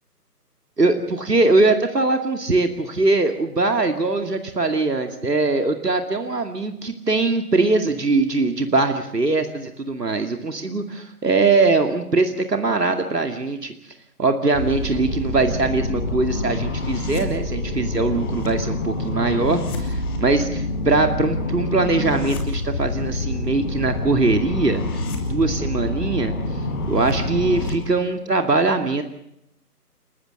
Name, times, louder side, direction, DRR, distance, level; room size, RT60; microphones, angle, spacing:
voice 1, 0.8-13.7 14.2-25.0 25.3-26.3 26.9-29.0, right 3 dB, 85° right, 6 dB, 2.5 m, -21 dB
sound 1, 14.5-27.7, left 2 dB, 15° left, 2.1 m, -26 dB
29.5 x 13.5 x 7.9 m, 0.77 s
figure-of-eight pair, 155°, 47 cm